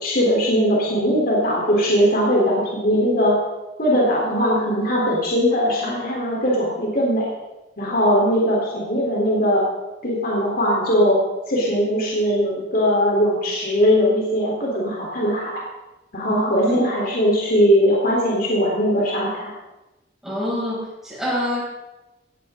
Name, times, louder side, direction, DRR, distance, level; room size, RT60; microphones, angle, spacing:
voice 1, 0.0-3.4 3.8-7.3 7.8-9.6 10.0-11.2 11.5-15.5 16.1-19.5, equal, 55° left, -4 dB, 3.9 m, -20 dB
voice 2, 16.3-16.8 20.2-21.6, left 1 dB, ahead, -7 dB, 6.9 m, -26 dB
17.5 x 14.5 x 3.9 m, 1.0 s
head